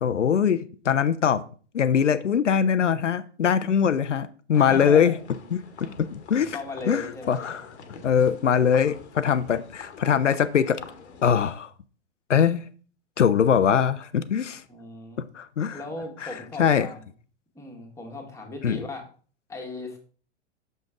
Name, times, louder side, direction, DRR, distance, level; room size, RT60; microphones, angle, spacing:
voice 1, 0.0-1.4 1.7-5.1 5.5-6.6 6.9-7.6 8.0-10.8 11.2-11.7 12.3-12.7 13.2-14.6 15.2-15.8 16.2-16.9 18.6-18.8, left 7 dB, 90° left, 0.5 m, -22 dB
sound 1, 4.5-11.5, left 5 dB, 70° left, 1.1 m, -45 dB
voice 2, 4.5-5.2 5.8-5.9 6.3-7.5 8.4-8.5 14.7-15.2 15.7-17.0 17.5-19.1 19.5-20.0, left 3 dB, 10° left, 1.5 m, -37 dB
6.3 x 5.3 x 3.6 m
figure-of-eight pair, 100°, 35 cm